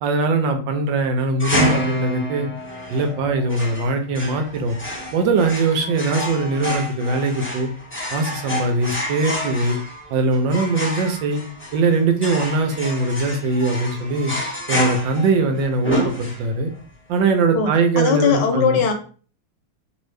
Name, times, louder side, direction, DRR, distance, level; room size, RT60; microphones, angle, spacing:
voice 1, 0.0-2.5 2.9-4.8 5.1-7.7 8.1-9.8 10.1-11.4 11.7-14.3 14.7-16.7 17.1-18.8, right 3 dB, 75° right, 5 dB, 1.3 m, -21 dB
sound 1, 1.4-16.7, equal, 10° left, 0.9 m, -28 dB
voice 2, 17.5-18.9, left 6 dB, 70° left, 5 dB, 1.1 m, -20 dB
3.0 x 2.7 x 3.2 m, 0.40 s
omnidirectional pair, 2.1 m